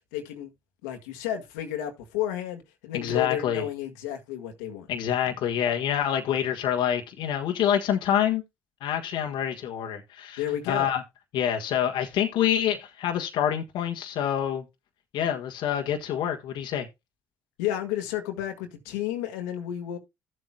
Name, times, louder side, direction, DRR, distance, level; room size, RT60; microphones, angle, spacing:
voice 1, 0.1-0.5 0.8-4.9 10.4-10.9 17.6-20.0, left 11 dB, 85° left, 1.7 m, -32 dB
voice 2, 2.9-3.6 4.9-8.4 8.8-11.0 11.3-14.6 15.1-16.9, left 10 dB, 70° left, 1.5 m, -26 dB
14.0 x 7.8 x 2.2 m
hypercardioid pair, 60°, 9 cm